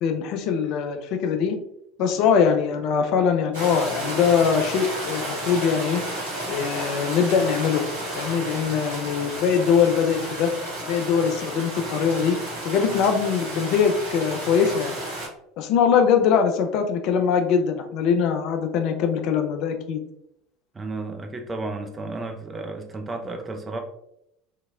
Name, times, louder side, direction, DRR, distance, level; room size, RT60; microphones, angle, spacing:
voice 1, 0.0-1.6 2.0-6.0 6.5-7.8 8.1-10.5 10.9-12.4 12.6-14.9 15.6-20.0, left 7 dB, 50° left, 5 dB, 0.3 m, -22 dB
sound 1, 3.5-15.3, right 1 dB, 75° right, 1.2 m, -32 dB
voice 2, 20.7-23.8, right 2 dB, 20° right, 4 dB, 0.5 m, -33 dB
2.8 x 2.8 x 2.2 m, 0.78 s
figure-of-eight pair, 70°, 0 cm